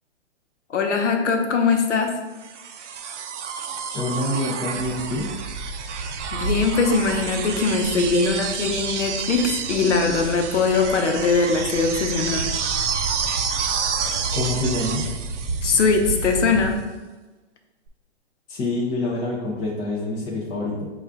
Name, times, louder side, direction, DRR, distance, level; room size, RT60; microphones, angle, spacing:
voice 1, 0.7-2.2 6.3-12.5 15.6-16.8, left 4 dB, 90° left, 3 dB, 0.9 m, -21 dB
sound 1, 2.4-16.4 17.9-18.0, right 7 dB, 80° right, 0.6 m, -30 dB
voice 2, 3.9-5.3 14.3-15.0 18.5-20.9, left 2 dB, 15° left, -6 dB, 0.3 m, -26 dB
sound 2, 4.7-16.7, right 3 dB, 30° right, 0.6 m, -33 dB
5.4 x 2.4 x 3.4 m, 1.2 s
hypercardioid pair, 130°, 35 cm